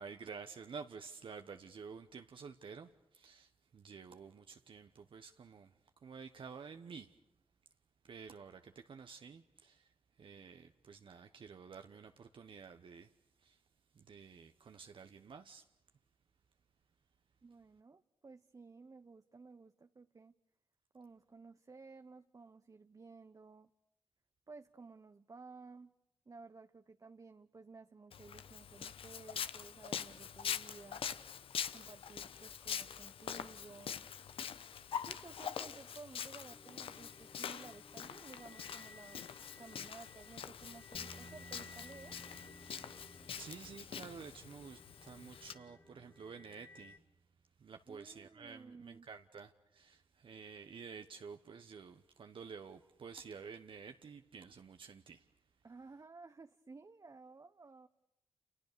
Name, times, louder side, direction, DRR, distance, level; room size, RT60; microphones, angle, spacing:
voice 1, 0.0-5.7 6.0-7.1 8.0-9.9 10.2-13.1 13.4-13.6 13.9-15.6 43.4-47.0 47.6-55.2, right 5 dB, 65° right, 1.1 m, -51 dB
voice 2, 17.4-20.3 20.9-23.7 24.5-25.9 26.3-31.1 31.7-34.1 35.0-39.3 39.6-42.2 47.9-49.1 55.6-57.9, right 4 dB, 40° right, 1.0 m, -55 dB
Walk footsteps, 28.1-45.5, left 8 dB, 80° left, 1.0 m, -44 dB
sound 1, 36.5-47.0, left 3 dB, 30° left, 3.5 m, -59 dB
sound 2, 40.9-49.0, right 2 dB, ahead, 2.2 m, -61 dB
29.0 x 28.5 x 6.8 m
supercardioid pair, 45°, 9 cm